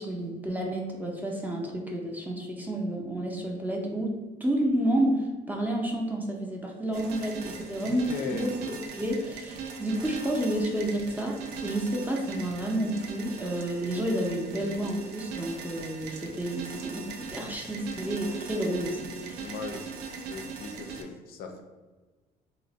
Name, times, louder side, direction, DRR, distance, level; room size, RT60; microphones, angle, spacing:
voice 1, 0.0-19.5, right 1 dB, 10° right, 0 dB, 0.5 m, -30 dB
sound 1, 6.9-21.0, right 5 dB, 85° right, 0.4 m, -40 dB
voice 2, 7.7-8.5 19.4-20.0 20.3-21.6, left 4 dB, 65° left, 5 dB, 0.4 m, -38 dB
2.4 x 2.0 x 3.9 m, 1.3 s
cardioid pair, 110°, 17 cm